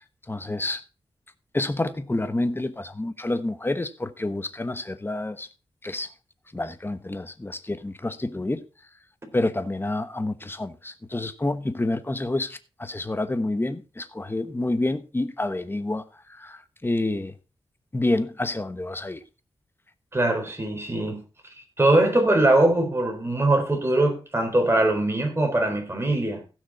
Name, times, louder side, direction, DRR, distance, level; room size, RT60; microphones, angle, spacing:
voice 1, 0.3-0.8 1.5-5.5 5.8-6.1 6.5-8.6 9.3-16.0 16.3-17.3 17.9-19.2, left 2 dB, 20° left, 1.1 m, -28 dB
voice 2, 20.1-21.2 21.8-26.4, right 1 dB, 25° right, 3.9 m, -21 dB
15.5 x 6.3 x 4.1 m
cardioid pair, 70°, 10 cm